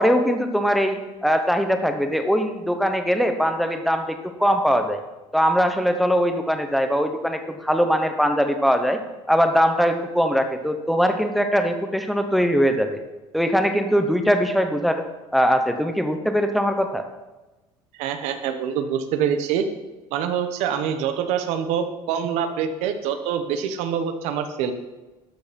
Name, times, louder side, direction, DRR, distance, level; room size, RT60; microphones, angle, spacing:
voice 1, 0.0-5.0 5.3-9.0 9.3-13.0 13.3-15.0 15.3-17.0, equal, ahead, 6 dB, 0.8 m, -21 dB
voice 2, 18.0-19.6 20.1-24.7, right 8 dB, 75° right, 8 dB, 1.2 m, -25 dB
12.0 x 7.0 x 5.3 m, 1.1 s
cardioid pair, 165°, 12 cm